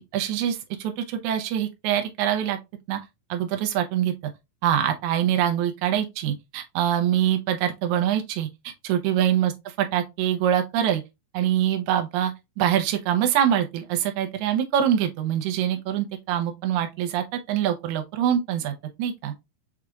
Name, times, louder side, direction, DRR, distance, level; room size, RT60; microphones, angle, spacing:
voice 1, 0.0-2.6 2.9-3.0 3.3-4.3 4.6-9.5 9.8-11.0 11.3-19.3, right 10 dB, 75° right, 1.8 m, -24 dB
6.0 x 3.2 x 2.3 m
omnidirectional pair, 4.1 m